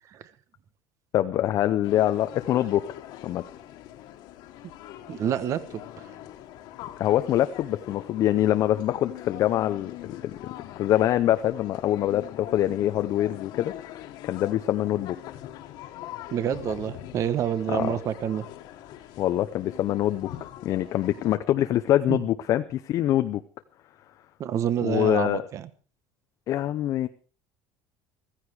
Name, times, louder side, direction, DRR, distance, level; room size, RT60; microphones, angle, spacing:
voice 1, 1.1-2.8 3.2-3.4 7.0-10.3 10.8-15.2 17.7-18.0 19.2-20.3 20.6-23.4 24.8-25.4 26.5-27.1, left 12 dB, 40° left, 9 dB, 0.7 m, -24 dB
sound 1, 1.8-21.4, left 13 dB, 55° left, 1.8 m, -42 dB
voice 2, 5.1-5.8 16.3-18.4 22.1-22.2 24.4-25.7, right 9 dB, 35° right, 15 dB, 1.2 m, -28 dB
15.0 x 14.5 x 4.8 m, 0.38 s
cardioid pair, 165°, 9 cm